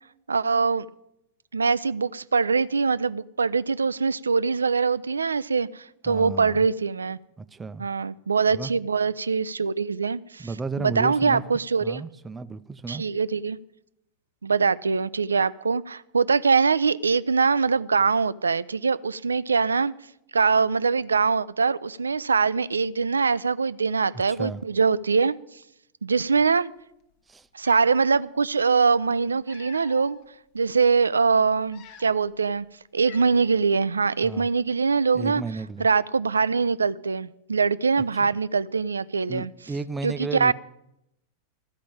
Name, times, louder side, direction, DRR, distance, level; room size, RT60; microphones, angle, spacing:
voice 1, 0.3-0.9 1.5-7.2 7.8-10.5 10.8-12.0 12.9-13.6 14.4-19.9 20.3-25.4 26.0-26.7 27.5-30.2 30.5-32.6 32.9-35.4 35.8-39.5 40.0-40.5, right 5 dB, 75° right, 0.3 m, -23 dB
voice 2, 6.1-6.7 7.4-7.9 8.5-8.7 10.4-11.4 11.8-13.0 24.3-24.6 27.3-27.5 34.2-34.5 35.1-35.9 38.2-38.3 39.3-40.5, right 3 dB, 15° right, 0.5 m, -33 dB
Cat, 27.1-27.2 27.6-28.1 29.1-30.3 30.8-31.0 31.6-32.4 32.6-32.7 33.1-33.7, left 8 dB, 45° left, 0.9 m, -49 dB
13.5 x 5.1 x 8.6 m
figure-of-eight pair, 90°, 0 cm